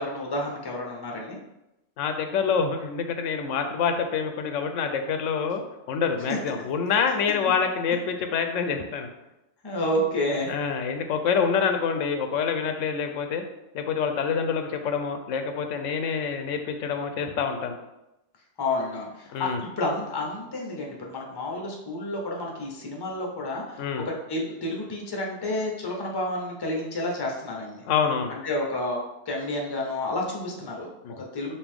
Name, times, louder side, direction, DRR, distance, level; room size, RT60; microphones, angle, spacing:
voice 1, 0.0-1.4 6.3-6.4 9.6-10.5 18.6-23.8 24.0-27.8 28.3-31.5, left 1 dB, 25° left, 0 dB, 0.6 m, -30 dB
voice 2, 2.0-5.6 5.9-9.1 10.5-13.4 13.7-17.8 19.3-19.6 23.8-24.1 27.8-28.3 31.0-31.1, left 6 dB, 90° left, 6 dB, 0.9 m, -26 dB
5.2 x 2.7 x 3.5 m, 0.92 s
omnidirectional pair, 1.2 m